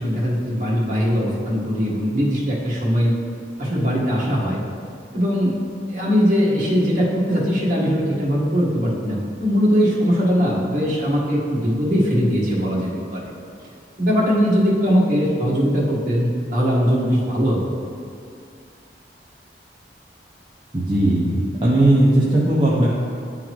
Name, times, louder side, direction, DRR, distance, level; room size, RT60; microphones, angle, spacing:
voice 1, 0.0-3.1 3.6-4.6 5.1-5.6 5.9-13.2 14.0-17.6, equal, 45° right, -6 dB, 1.5 m, -20 dB
voice 2, 20.7-22.9, right 1 dB, 25° right, -7 dB, 0.7 m, -17 dB
10.0 x 3.8 x 3.1 m, 2.3 s
head